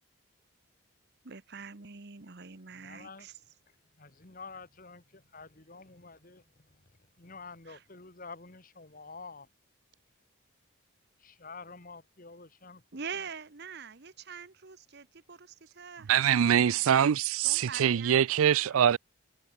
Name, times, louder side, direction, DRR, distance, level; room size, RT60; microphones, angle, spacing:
voice 1, 1.2-3.4 7.7-7.8 12.9-16.9 17.4-18.7, right 6 dB, 50° right, 1.1 m, -44 dB
voice 2, 2.7-3.3 3.7-6.9 7.2-9.5 11.4-12.8 18.7-18.9, left 4 dB, 40° left, 1.7 m, -49 dB
voice 3, 16.1-19.0, right 9 dB, 75° right, 0.4 m, -24 dB
head